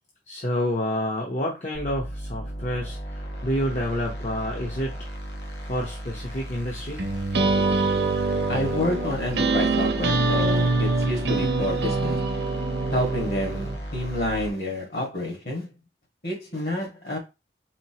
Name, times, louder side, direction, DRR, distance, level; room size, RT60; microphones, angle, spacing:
voice 1, 0.3-4.9 5.6-7.1, equal, 40° left, 0.9 m, -29 dB
sound 1, 1.7-14.5, equal, 75° left, 1.3 m, -35 dB
sound 2, 7.0-13.8, right 3 dB, 75° right, 0.7 m, -24 dB
voice 2, 8.5-12.2 12.9-15.7 16.2-17.2, left 1 dB, 60° left, 1.8 m, -29 dB
4.4 x 4.0 x 2.9 m
head